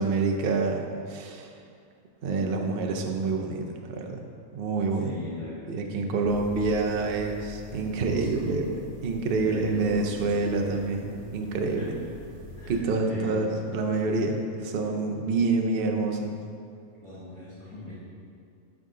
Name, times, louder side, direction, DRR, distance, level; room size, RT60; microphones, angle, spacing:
voice 1, 0.0-1.5 2.2-4.2 4.5-5.2 5.7-11.9 12.7-16.3, right 3 dB, 55° right, 3 dB, 0.7 m, -27 dB
voice 2, 5.0-5.6 6.0-6.6 7.9-8.5 9.4-10.4 11.8-11.9 12.5-13.5 17.0-17.9, left 1 dB, 25° left, -10 dB, 1.2 m, -40 dB
sound 1, 6.3-12.8, left 3 dB, 85° right, 1.2 m, -46 dB
10.0 x 3.7 x 3.8 m, 2.4 s
omnidirectional pair, 1.5 m